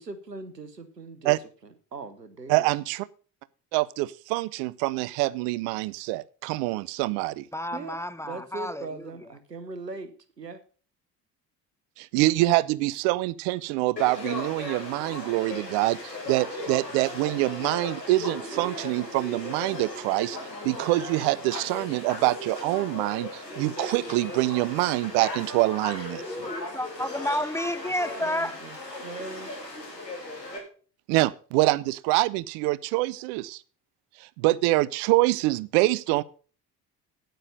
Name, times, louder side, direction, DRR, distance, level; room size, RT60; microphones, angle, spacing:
voice 1, 0.0-1.3 1.6-2.7 7.7-8.0 8.2-10.6 27.9-29.5, right 3 dB, 90° right, 1.0 m, -40 dB
voice 2, 2.5-3.1 3.7-7.4 12.0-20.4 20.6-26.2 31.1-33.6 34.2-36.2, right 19 dB, 55° right, 0.7 m, -25 dB
voice 3, 7.5-8.9 26.2-28.6, left 1 dB, 5° left, 0.7 m, -30 dB
Conversation / Crowd, 14.0-30.6, left 2 dB, 85° left, 2.3 m, -37 dB
9.2 x 9.1 x 6.6 m
figure-of-eight pair, 55°, 48 cm